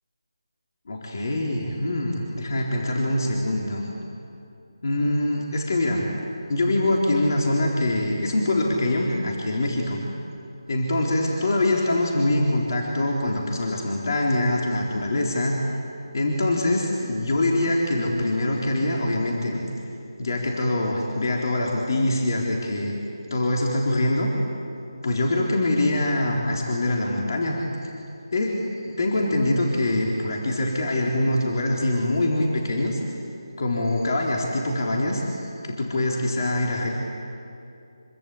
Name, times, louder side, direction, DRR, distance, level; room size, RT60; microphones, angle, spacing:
voice 1, 0.9-3.9 4.8-6.1 6.5-10.0 10.7-15.6 16.1-19.6 20.2-22.9 23.3-24.3 25.0-27.9 28.3-33.2 33.6-36.9, left 1 dB, 50° left, -1 dB, 4.0 m, -24 dB
26.5 x 24.0 x 8.6 m, 2.7 s
figure-of-eight pair, 165°, 3 cm